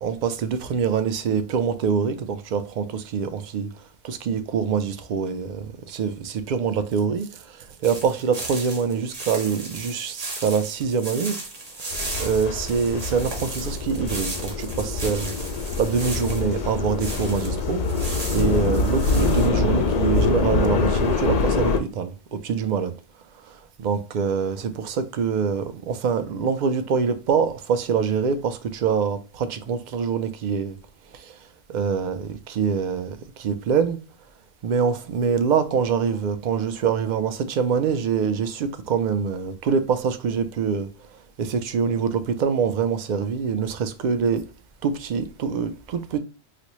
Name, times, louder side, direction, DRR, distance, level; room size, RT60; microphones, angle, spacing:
voice 1, 0.0-3.7 4.0-11.4 11.8-15.3 15.8-17.8 18.3-22.9 23.4-30.8 31.1-31.4 31.7-34.0 34.6-40.9 41.4-44.4 44.8-46.2, right 6 dB, 55° right, 0.5 m, -25 dB
sound 1, 7.8-17.5 17.8-19.5, right 2 dB, 40° right, 0.9 m, -36 dB
sound 2, 11.9-21.8, left 3 dB, 55° left, 0.5 m, -24 dB
4.1 x 2.1 x 3.0 m
omnidirectional pair, 1.1 m